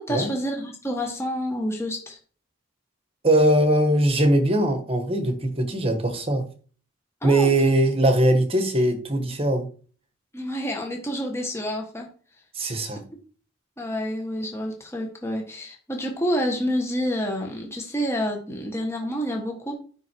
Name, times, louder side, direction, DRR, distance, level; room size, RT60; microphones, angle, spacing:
voice 1, 0.0-2.2 7.2-7.7 10.3-12.1 13.8-19.7, equal, 15° left, 1.5 m, -28 dB
voice 2, 3.2-6.5 7.2-9.7 12.5-13.0, right 1 dB, 30° right, 1.5 m, -21 dB
9.4 x 5.6 x 4.7 m
head